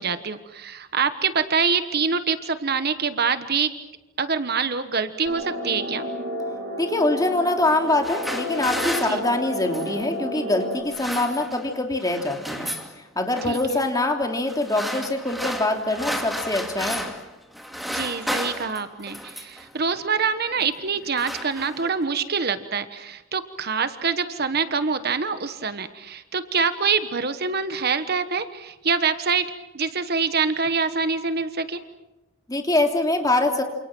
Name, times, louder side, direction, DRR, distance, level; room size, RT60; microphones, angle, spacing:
voice 1, 0.0-3.7 4.2-6.1 9.1-9.2 13.5-13.8 17.9-29.5 29.7-31.8, right 5 dB, 50° right, 11 dB, 1.2 m, -25 dB
sound 1, 5.3-10.8, left 1 dB, 75° right, 6.1 m, -31 dB
voice 2, 6.8-12.7 13.1-17.1 32.5-33.6, left 2 dB, 15° left, 3 dB, 3.1 m, -24 dB
sound 2, 7.8-10.0 10.7-11.7 12.0-12.9 13.4-13.8 14.5-17.3 17.5-19.7 20.4-20.7 20.9-22.0, equal, ahead, 2.5 m, -32 dB
28.5 x 27.5 x 6.2 m, 1.1 s
head